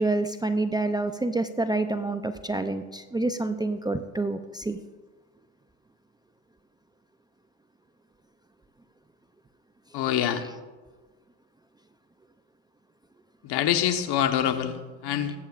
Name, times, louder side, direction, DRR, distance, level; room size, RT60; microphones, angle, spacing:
voice 1, 0.0-4.8, right 2 dB, 10° right, 8 dB, 0.5 m, -27 dB
voice 2, 9.9-10.4 13.4-15.4, left 10 dB, 60° left, 7 dB, 1.3 m, -25 dB
22.0 x 8.7 x 2.5 m, 1.3 s
supercardioid pair, 85°, 45 cm